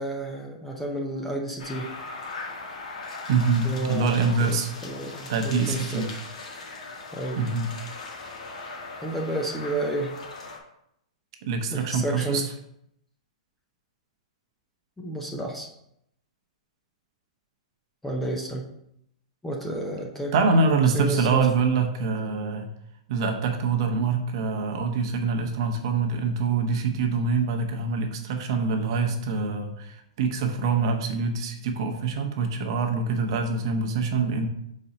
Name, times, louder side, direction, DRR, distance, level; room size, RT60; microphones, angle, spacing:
voice 1, 0.0-1.9 3.6-4.6 4.8-6.2 7.1-7.4 9.0-10.1 11.7-12.5 15.0-15.7 18.0-18.6 19.4-20.3 20.9-21.4, right 1 dB, 5° left, -1 dB, 0.6 m, -31 dB
sound 1, 1.6-10.6, left 3 dB, 75° left, 1.7 m, -39 dB
voice 2, 3.3-4.7 5.3-6.1 7.3-7.7 11.4-12.5 20.3-22.7 23.1-34.5, right 4 dB, 40° right, 4 dB, 1.0 m, -25 dB
5.3 x 4.3 x 5.1 m, 0.76 s
hypercardioid pair, 170°, 4 cm